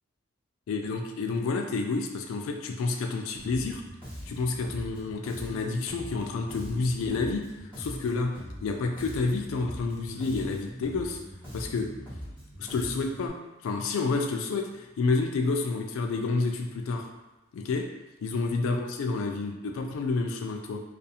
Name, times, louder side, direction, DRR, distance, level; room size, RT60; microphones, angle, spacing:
voice 1, 0.7-3.8 4.3-7.4 7.8-8.3 8.6-11.2 11.5-11.9 12.6-13.4 13.6-17.1 17.5-17.9 18.2-20.8, left 3 dB, 85° left, 3 dB, 0.3 m, -29 dB
Bass guitar, 3.4-13.3, equal, 25° right, 1.0 m, -42 dB
2.4 x 2.4 x 2.7 m, 1.0 s
head